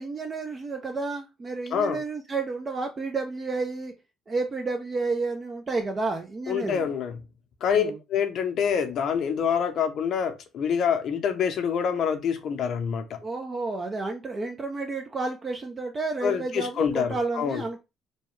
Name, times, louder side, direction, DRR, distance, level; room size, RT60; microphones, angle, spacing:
voice 1, 0.0-3.9 4.3-6.9 7.7-8.0 13.2-17.8, right 3 dB, 35° right, 0.5 m, -31 dB
voice 2, 1.7-2.0 6.5-7.2 7.6-13.2 16.2-17.6, left 7 dB, 60° left, 0.6 m, -26 dB
2.9 x 2.2 x 3.1 m
supercardioid pair, 80°, 0 cm